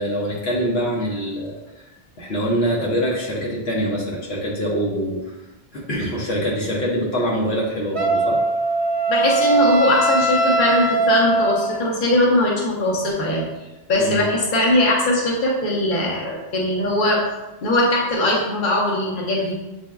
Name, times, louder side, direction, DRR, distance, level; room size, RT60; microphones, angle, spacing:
voice 1, 0.0-1.6 2.2-5.3 5.7-8.4 14.0-14.2, equal, 70° left, -4 dB, 1.1 m, -24 dB
Wind instrument woodwind instrument, 8.0-11.9, right 2 dB, 75° right, 0.8 m, -20 dB
voice 2, 9.1-13.5 13.9-17.2 17.6-19.5, left 1 dB, 50° left, -3 dB, 1.0 m, -20 dB
7.5 x 2.7 x 2.3 m, 1.1 s
omnidirectional pair, 1.1 m